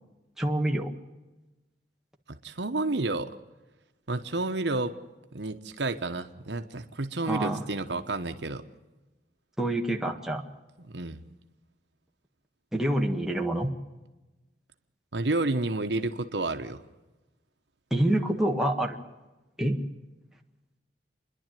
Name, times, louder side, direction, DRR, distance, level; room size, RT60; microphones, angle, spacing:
voice 1, 0.4-0.9 7.2-7.6 9.6-10.4 12.7-13.7 17.9-19.0 19.6-19.8, right 1 dB, 5° right, 1 dB, 1.7 m, -26 dB
voice 2, 2.3-3.3 4.1-4.9 5.3-8.6 10.8-11.2 15.1-16.8, right 2 dB, 75° right, 7 dB, 1.2 m, -30 dB
28.5 x 11.0 x 9.2 m, 1.1 s
head